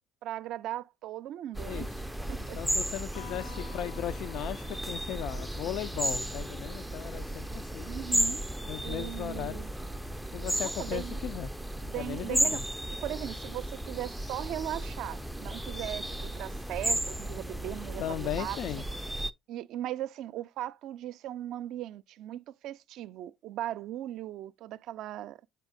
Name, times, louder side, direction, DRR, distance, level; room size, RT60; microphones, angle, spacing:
voice 1, 0.2-1.9 2.3-2.6 7.9-8.4 8.8-9.7 10.6-11.2 11.8-12.6 13.0-18.9 19.5-25.5, right 13 dB, 65° right, 0.4 m, -38 dB
sound 1, 1.5-19.3, right 1 dB, ahead, 0.4 m, -34 dB
voice 2, 2.4-7.9 8.6-9.6 10.3-11.5 11.9-12.7 18.0-18.8, left 12 dB, 65° left, 0.5 m, -37 dB
Electric guitar, 3.1-6.7, left 7 dB, 80° left, 0.9 m, -51 dB
7.2 x 5.6 x 2.6 m
supercardioid pair, 85°, 0 cm